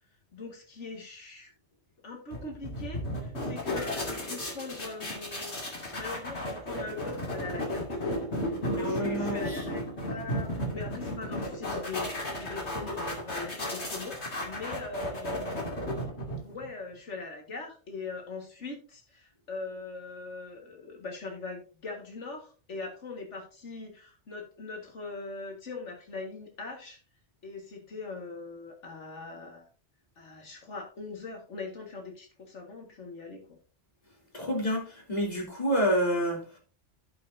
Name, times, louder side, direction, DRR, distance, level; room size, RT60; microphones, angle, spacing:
voice 1, 0.3-1.5 2.0-5.6 5.9-15.6 16.4-27.0 27.4-29.7 30.2-33.6, left 3 dB, 85° left, 2.1 m, -41 dB
sound 1, 2.3-16.7, left 1 dB, 70° left, 2.8 m, -34 dB
voice 2, 8.8-9.4 34.3-36.6, equal, 35° left, 3.0 m, -28 dB
16.5 x 5.5 x 2.6 m
omnidirectional pair, 1.2 m